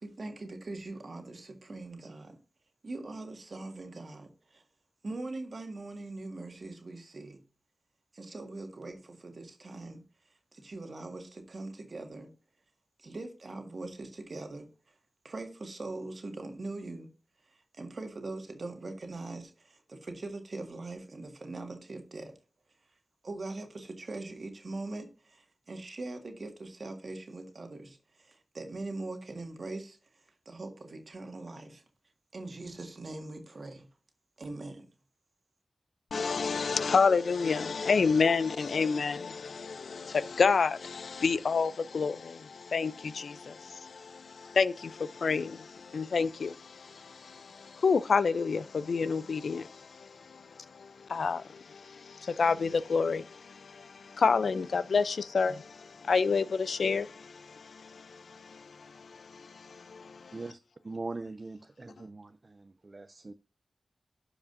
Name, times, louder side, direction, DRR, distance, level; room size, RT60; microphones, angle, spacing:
voice 1, 0.0-2.4 2.8-4.6 5.0-7.4 8.1-10.0 10.3-12.3 13.0-14.9 15.2-17.1 17.4-22.3 23.2-31.8 32.3-33.9 34.4-34.9, right 2 dB, 60° right, 1.7 m, -42 dB
voice 2, 36.1-60.4, left 5 dB, 80° left, 0.4 m, -29 dB
voice 3, 60.8-63.3, right 3 dB, 45° right, 0.4 m, -41 dB
12.0 x 4.9 x 2.5 m
cardioid pair, 60°, 0 cm